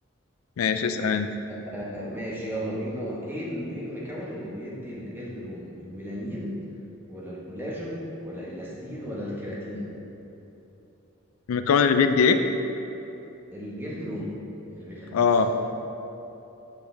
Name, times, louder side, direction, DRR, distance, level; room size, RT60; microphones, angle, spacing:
voice 1, 0.6-1.3 11.5-12.4 15.1-15.5, left 6 dB, 85° left, 8 dB, 0.3 m, -21 dB
voice 2, 1.7-6.6 7.1-10.0 13.5-14.4 14.7-15.5, equal, 10° right, -7 dB, 1.1 m, -35 dB
8.4 x 5.0 x 3.3 m, 3.0 s
head